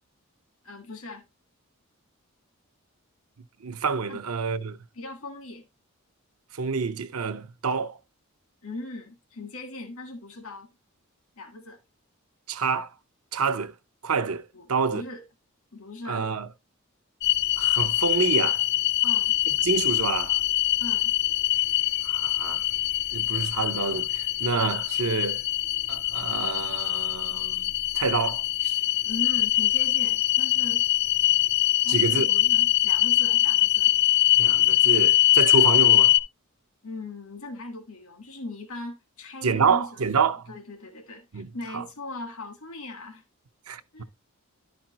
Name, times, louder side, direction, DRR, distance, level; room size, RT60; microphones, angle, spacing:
voice 1, 0.6-1.2 4.1-4.2 4.9-5.6 8.6-10.7 11.4-11.8 14.5-15.2 15.7-16.2 19.0-19.3 20.8-21.1 29.0-30.8 31.8-33.9 36.8-43.2 43.9-44.0, left 2 dB, 75° left, 1.5 m, -39 dB
voice 2, 3.6-4.8 6.5-8.0 12.5-12.9 13.3-13.7 14.0-15.0 16.1-16.5 17.6-18.6 19.6-20.4 22.0-22.6 23.1-25.4 25.9-27.7 27.9-28.8 31.9-32.3 34.4-36.2 39.4-40.5 41.3-41.8 43.7-44.0, right 5 dB, 80° right, 0.7 m, -27 dB
sound 1, 17.2-36.2, left 15 dB, 50° left, 0.5 m, -23 dB
11.0 x 5.1 x 2.9 m
head